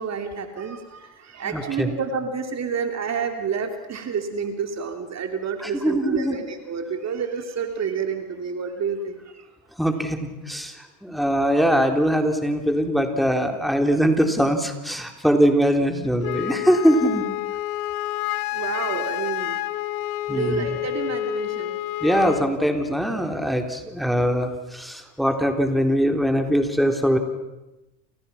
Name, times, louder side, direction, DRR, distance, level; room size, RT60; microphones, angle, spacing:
voice 1, 0.0-9.5 18.5-19.6 20.3-21.8, right 6 dB, 35° right, 5 dB, 3.1 m, -29 dB
voice 2, 1.4-1.9 5.6-6.4 9.8-10.7 11.0-17.3 20.3-20.7 22.0-27.2, equal, ahead, 4 dB, 4.0 m, -22 dB
Wind instrument woodwind instrument, 16.2-22.5, left 16 dB, 75° left, 1.6 m, -29 dB
29.5 x 28.5 x 6.1 m, 1.0 s
hypercardioid pair, 90°, 47 cm